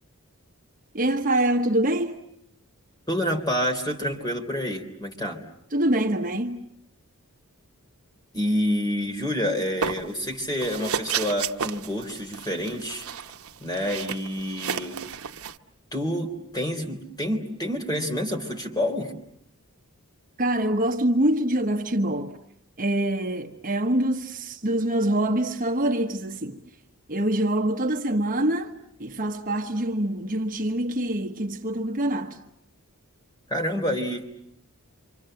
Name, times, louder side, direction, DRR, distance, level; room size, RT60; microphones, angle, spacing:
voice 1, 0.9-2.2 5.7-6.7 20.4-22.4 22.8-26.6 27.1-28.7 29.0-32.4, right 1 dB, 40° right, 1.2 m, -25 dB
voice 2, 3.1-5.4 8.3-13.1 13.6-15.0 15.9-19.1 33.5-34.2, equal, 15° left, 3.5 m, -28 dB
sound 1, 9.8-10.3 10.6-15.6, right 7 dB, 70° right, 1.0 m, -32 dB
28.5 x 26.0 x 7.7 m
head